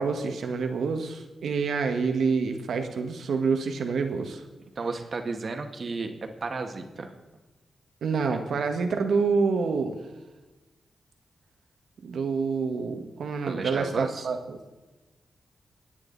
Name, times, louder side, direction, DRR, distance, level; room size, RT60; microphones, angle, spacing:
voice 1, 0.0-4.4 8.0-10.0 12.0-14.6, right 5 dB, 85° right, 5 dB, 1.7 m, -27 dB
voice 2, 4.8-7.1 8.3-8.4 13.5-14.3, right 3 dB, 50° right, 5 dB, 1.9 m, -33 dB
28.0 x 9.7 x 4.2 m, 1.2 s
cardioid pair, 95°, 0 cm